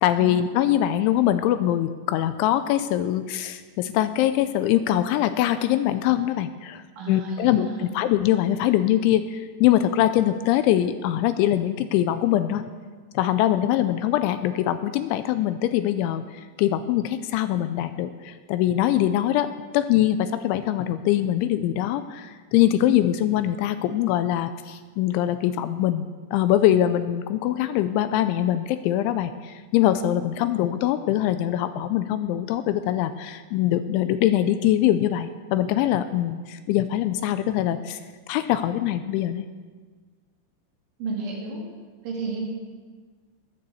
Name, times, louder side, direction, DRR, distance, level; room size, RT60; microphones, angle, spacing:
voice 1, 0.0-12.6 13.1-19.5 19.7-38.0 38.3-39.5, left 12 dB, 85° left, 11 dB, 2.8 m, -23 dB
voice 2, 7.0-7.9 30.2-30.3 41.0-41.6 42.0-42.5, right 3 dB, 75° right, -2 dB, 4.8 m, -32 dB
20.0 x 6.9 x 7.9 m, 1.5 s
omnidirectional pair, 5.7 m